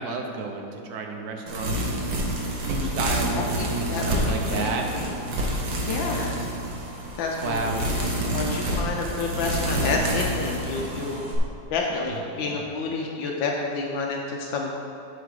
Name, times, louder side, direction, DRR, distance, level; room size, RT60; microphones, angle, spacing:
voice 1, 0.0-2.0 2.6-4.9 7.4-7.8 12.1-12.7, right 4 dB, 60° right, 3 dB, 1.2 m, -31 dB
sound 1, 1.5-11.4, right 1 dB, 85° right, 2.0 m, -28 dB
voice 2, 3.3-5.4 5.8-6.4 7.2-7.6 8.3-11.2 11.7-14.7, left 4 dB, 80° left, 0 dB, 1.5 m, -29 dB
8.4 x 5.1 x 6.3 m, 2.7 s
omnidirectional pair, 2.1 m